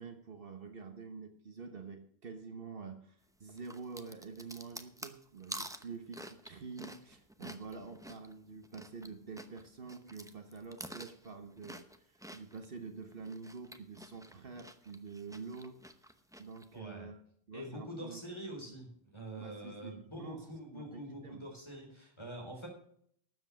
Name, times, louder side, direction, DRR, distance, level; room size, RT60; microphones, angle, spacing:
voice 1, 0.0-15.8 16.4-17.2 17.5-18.2 19.3-20.5 20.7-21.5, right 4 dB, 55° right, 6 dB, 1.3 m, -47 dB
sound 1, 3.6-9.1 9.3-12.7 13.1-16.6, equal, 5° right, 0.7 m, -48 dB
voice 2, 16.7-17.1 17.5-22.7, right 1 dB, 25° left, 1 dB, 4.1 m, -45 dB
12.5 x 7.8 x 6.2 m, 0.65 s
omnidirectional pair, 1.1 m